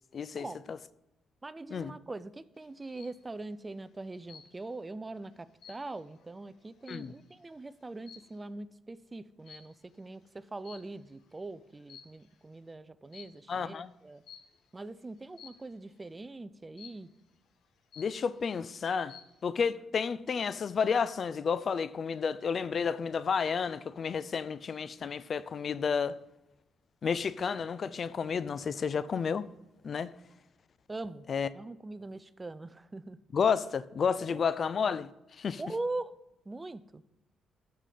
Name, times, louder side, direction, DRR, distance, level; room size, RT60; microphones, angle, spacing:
voice 1, 0.1-0.8 1.7-1.9 6.9-7.1 13.5-13.9 18.0-19.2 19.4-26.2 27.0-29.5 29.8-30.1 31.3-31.5 33.3-35.1 35.4-35.6, left 6 dB, 50° left, 0.5 m, -31 dB
voice 2, 1.4-14.2 14.7-17.1 30.9-31.3 31.5-33.2 34.3-34.4 35.6-36.1 36.5-37.0, right 2 dB, 20° right, 0.5 m, -42 dB
sound 1, 2.6-3.2 4.3-4.8 5.2-7.4 8.0-8.4 9.4-9.8 10.6-11.2 11.7-12.4 13.1-13.5 14.3-14.7 15.4-15.8 16.8-17.2 17.6-17.7 17.9-18.5 18.9-19.4, left 8 dB, 70° left, 1.2 m, -53 dB
12.5 x 5.0 x 5.8 m
cardioid pair, 90°, 0 cm